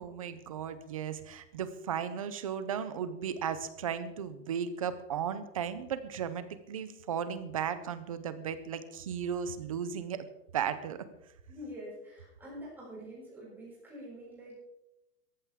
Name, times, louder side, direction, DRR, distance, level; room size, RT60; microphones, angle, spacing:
voice 1, 0.0-10.3 10.5-11.0, right 8 dB, 25° right, 12 dB, 0.5 m, -35 dB
voice 2, 11.5-14.6, equal, 5° right, -7 dB, 6.7 m, -46 dB
18.0 x 14.0 x 3.6 m, 0.86 s
supercardioid pair, 165°, 48 cm